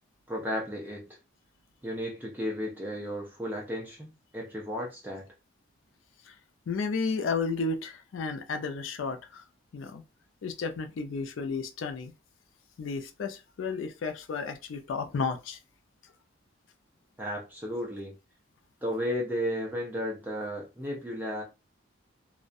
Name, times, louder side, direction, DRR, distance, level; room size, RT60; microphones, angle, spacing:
voice 1, 0.3-1.0 1.8-5.2 17.2-18.1 18.8-21.4, equal, 10° right, 0.4 m, -34 dB
voice 2, 6.7-9.4 9.7-10.0 10.4-12.1 12.8-15.6, left 4 dB, 75° left, 0.4 m, -32 dB
2.3 x 2.1 x 2.5 m
head